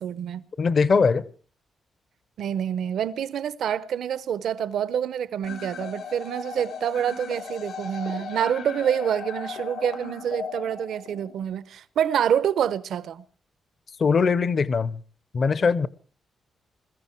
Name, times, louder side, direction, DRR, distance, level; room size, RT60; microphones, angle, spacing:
voice 1, 0.0-0.4 2.4-13.2, right 9 dB, 80° right, 0.8 m, -27 dB
voice 2, 0.6-1.2 14.0-15.0 15.3-15.9, left 5 dB, 40° left, 0.7 m, -21 dB
sound 1, 5.4-11.4, left 5 dB, 85° left, 3.7 m, -37 dB
21.5 x 14.5 x 4.5 m
wide cardioid pair, 155°, 0 cm